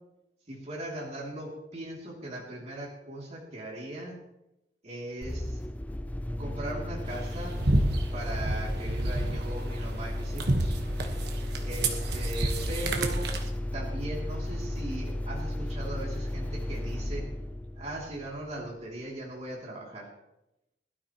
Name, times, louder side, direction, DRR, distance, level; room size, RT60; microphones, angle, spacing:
voice 1, 0.5-4.2 4.8-5.6 6.4-7.6 8.1-10.7 11.6-13.3 13.7-17.3 17.8-20.1, right 1 dB, 40° right, -3 dB, 2.9 m, -39 dB
sound 1, 5.2-18.7, left 1 dB, 10° left, 0.4 m, -34 dB
sound 2, 7.1-13.5, right 1 dB, 65° right, 1.3 m, -30 dB
20.5 x 12.5 x 3.1 m, 0.92 s
head